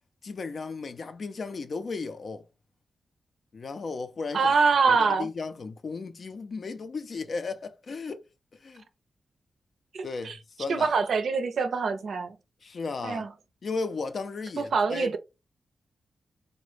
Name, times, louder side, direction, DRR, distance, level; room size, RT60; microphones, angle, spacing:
voice 1, 0.2-2.4 3.5-4.5 4.9-8.2 8.6-8.8 10.0-10.9 12.6-13.3 13.6-15.1, left 4 dB, 50° left, 0.4 m, -35 dB
voice 2, 4.3-5.3 9.9-10.4 10.7-12.3 13.0-13.3 14.6-15.2, right 4 dB, 70° right, 0.5 m, -24 dB
4.0 x 2.1 x 3.1 m
wide cardioid pair, 130°, 0 cm